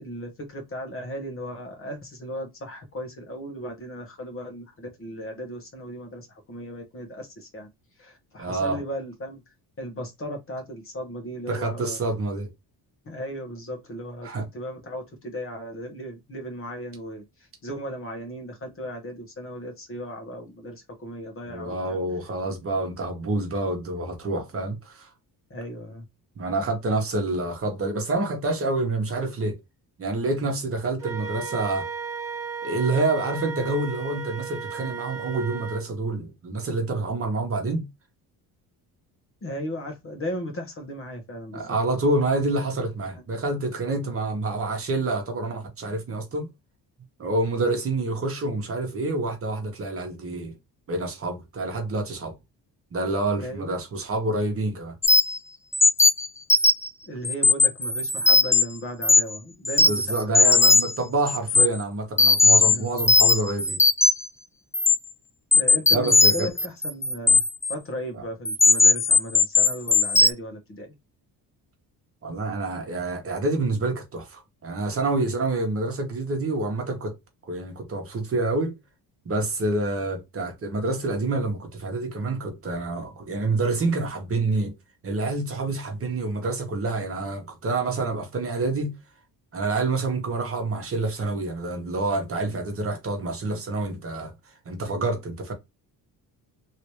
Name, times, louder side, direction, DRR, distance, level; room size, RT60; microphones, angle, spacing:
voice 1, 0.0-7.7 8.0-9.4 9.8-12.0 13.0-22.0 25.5-26.1 39.4-41.8 53.3-53.8 57.0-60.7 61.5-61.6 62.4-62.9 65.5-70.9, equal, 35° left, 1.3 m, -36 dB
voice 2, 8.4-8.8 11.5-12.5 14.2-14.5 21.5-25.1 26.4-29.6 30.0-31.9 32.6-37.9 41.5-46.5 47.2-50.5 50.9-52.3 52.9-55.0 59.9-63.8 65.9-66.5 72.2-77.2 77.5-78.8 79.2-84.7 85.0-88.9 89.5-94.3 94.6-95.5, right 2 dB, 35° right, 1.2 m, -27 dB
Wind instrument woodwind instrument, 31.0-35.9, right 6 dB, 10° right, 1.3 m, -34 dB
sound 1, 55.0-55.4 55.7-56.9 57.2-58.6 59.0-59.4 59.6-61.0 61.3-61.7 62.2-64.3 64.7-64.9 65.5-67.7 68.4-70.3, left 3 dB, 10° left, 0.3 m, -18 dB
3.2 x 2.8 x 3.0 m
cardioid pair, 110°, 39 cm